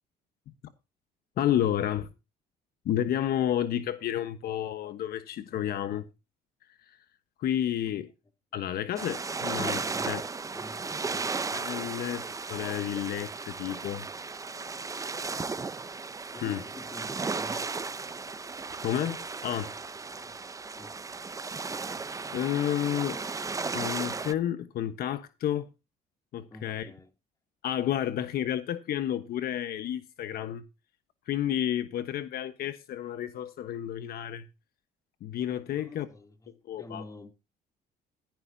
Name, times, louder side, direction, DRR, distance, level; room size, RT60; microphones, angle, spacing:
voice 1, 1.4-2.1 2.8-6.1 6.8-7.0 7.4-8.1 8.5-10.2 11.5-14.1 16.4-16.6 18.8-19.7 22.0-23.2 23.7-25.7 26.3-26.9 27.6-30.6 31.3-34.5 35.2-36.1 36.6-37.0, left 11 dB, 65° left, 1.2 m, -31 dB
sound 1, 9.0-24.3, right 4 dB, 20° right, 0.7 m, -35 dB
voice 2, 9.9-11.2 16.3-17.7 20.2-20.4 20.7-20.9 26.5-27.1 35.7-37.3, left 2 dB, 20° left, 2.8 m, -48 dB
15.5 x 10.5 x 2.8 m
cardioid pair, 110°, 17 cm